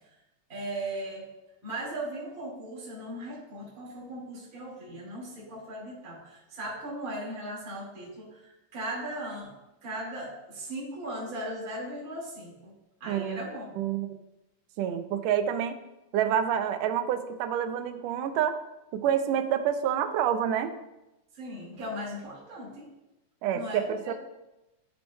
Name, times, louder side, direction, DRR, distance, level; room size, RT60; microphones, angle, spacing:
voice 1, 0.5-1.3 1.6-9.5 9.8-12.7 13.0-13.6 21.3-22.9 23.5-24.1, right 1 dB, 30° right, -6 dB, 2.3 m, -38 dB
voice 2, 13.1-13.4 13.8-14.1 14.8-15.8 16.1-18.6 18.9-20.7 23.4-24.1, right 9 dB, 80° right, 8 dB, 1.5 m, -27 dB
11.5 x 5.2 x 2.3 m, 0.96 s
omnidirectional pair, 3.5 m